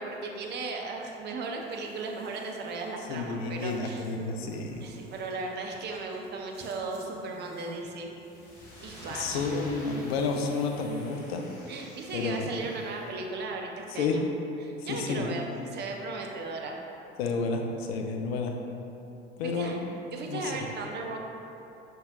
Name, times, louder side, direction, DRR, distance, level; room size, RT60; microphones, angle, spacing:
voice 1, 0.0-4.0 4.8-8.1 8.8-9.5 11.7-14.2 14.6-16.8 19.4-19.8 20.1-21.2, right 3 dB, 35° right, 1 dB, 0.5 m, -36 dB
Buzz, 1.4-10.5, right 1 dB, 65° right, 0.7 m, -53 dB
voice 2, 3.1-4.9 9.1-11.4 12.1-12.6 13.9-14.2 14.8-15.4 17.2-18.6 19.4-19.8 20.3-20.7, left 4 dB, 70° left, 3 dB, 0.5 m, -31 dB
sound 1, 8.2-13.1, equal, 55° left, 1.0 m, -48 dB
5.4 x 2.7 x 2.4 m, 2.9 s
figure-of-eight pair, 60°, 32 cm